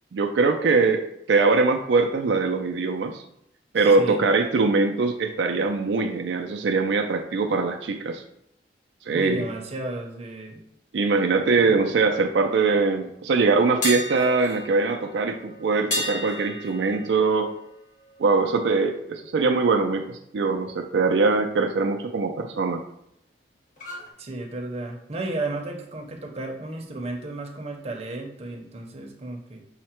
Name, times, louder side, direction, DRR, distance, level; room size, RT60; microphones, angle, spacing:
voice 1, 0.1-3.2 3.7-8.2 9.1-9.4 10.9-17.5 18.2-22.8, right 4 dB, 80° right, 3 dB, 0.4 m, -22 dB
voice 2, 9.1-10.6 11.6-11.8 24.2-29.6, right 2 dB, 35° right, 2 dB, 0.7 m, -33 dB
sound 1, 13.8-19.7 20.0-20.3 23.8-24.1, left 1 dB, 50° left, 1.1 m, -35 dB
5.6 x 2.1 x 4.3 m, 0.76 s
head